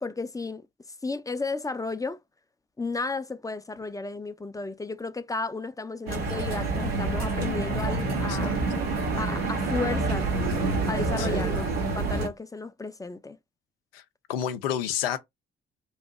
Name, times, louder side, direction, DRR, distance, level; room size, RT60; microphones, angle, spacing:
voice 1, 0.0-0.7 1.0-2.2 2.8-8.6 9.2-10.3 10.9-11.6 11.9-13.4, left 3 dB, 10° left, 0.4 m, -33 dB
sound 1, 6.1-12.3, right 3 dB, 90° right, 0.9 m, -27 dB
voice 2, 8.3-8.6 11.2-11.4 13.9-14.0 14.3-15.2, left 10 dB, 80° left, 0.5 m, -30 dB
3.1 x 2.6 x 3.5 m
figure-of-eight pair, 40°, 29 cm